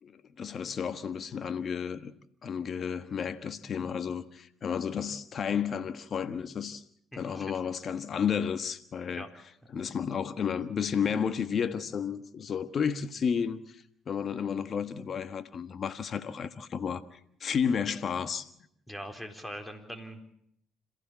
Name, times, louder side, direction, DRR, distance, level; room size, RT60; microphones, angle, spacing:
voice 1, 0.0-2.1 2.4-6.8 7.1-9.2 9.7-18.5, left 7 dB, 50° left, 1.4 m, -32 dB
voice 2, 7.1-7.5 9.1-9.3 18.9-20.3, equal, 10° left, 4.1 m, -42 dB
27.0 x 15.0 x 7.5 m
hypercardioid pair, 55°, 0 cm